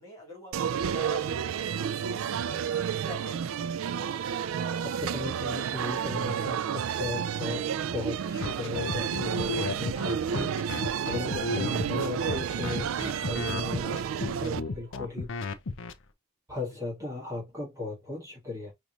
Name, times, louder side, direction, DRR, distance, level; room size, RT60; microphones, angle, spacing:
voice 1, 0.0-1.6 2.4-4.0 7.2-7.5 11.3-11.5 16.7-16.8, left 1 dB, 15° left, 2.7 m, -46 dB
sound 1, 0.5-14.6, right 8 dB, 70° right, 0.3 m, -31 dB
voice 2, 4.7-13.9 14.2-15.3 16.5-18.7, left 3 dB, 15° right, 1.9 m, -37 dB
sound 2, 8.4-15.9, left 3 dB, 65° left, 0.6 m, -33 dB
5.1 x 3.1 x 2.5 m
head